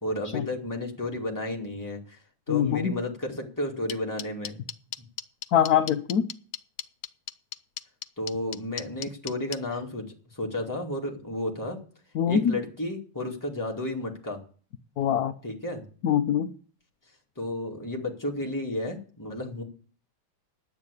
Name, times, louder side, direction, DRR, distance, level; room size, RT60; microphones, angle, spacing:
voice 1, 0.0-2.2 2.5-4.6 8.2-11.8 12.3-14.4 15.4-15.8 17.4-19.6, left 1 dB, 10° left, -1 dB, 2.3 m, -32 dB
voice 2, 2.5-2.9 5.5-6.3 12.1-12.6 15.0-15.3 16.0-16.5, left 9 dB, 60° left, 8 dB, 1.1 m, -23 dB
sound 1, 3.9-9.6, left 11 dB, 80° left, 1.5 m, -35 dB
10.5 x 8.6 x 8.3 m, 0.41 s
omnidirectional pair, 2.2 m